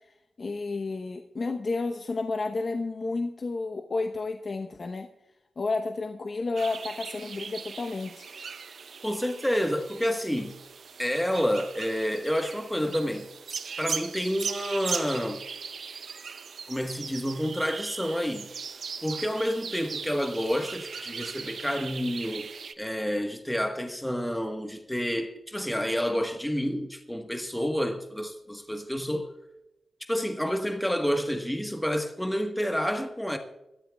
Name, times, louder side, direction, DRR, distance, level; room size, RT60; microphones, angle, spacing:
voice 1, 0.0-5.1 5.6-8.3, left 3 dB, 50° left, 0.9 m, -31 dB
sound 1, 6.6-22.7, right 6 dB, 70° right, 0.7 m, -39 dB
voice 2, 9.0-10.5 11.0-13.3 13.8-15.4 16.7-18.5 19.0-29.3 30.1-33.4, equal, 5° left, 1.3 m, -29 dB
21.5 x 13.0 x 2.3 m
cardioid pair, 80°, 0 cm